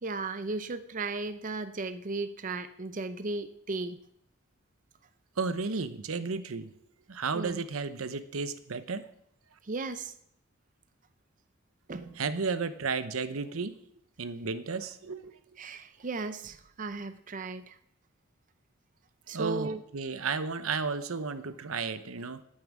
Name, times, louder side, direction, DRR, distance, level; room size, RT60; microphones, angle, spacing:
voice 1, 0.0-4.0 7.3-7.6 9.6-10.1 11.9-12.2 15.6-17.8 19.3-19.8, right 3 dB, 40° right, 10 dB, 0.6 m, -36 dB
voice 2, 5.4-6.7 7.1-9.1 12.2-13.8 14.2-15.3 19.3-22.4, right 4 dB, 85° right, 12 dB, 0.8 m, -33 dB
9.8 x 8.8 x 7.3 m, 0.73 s
head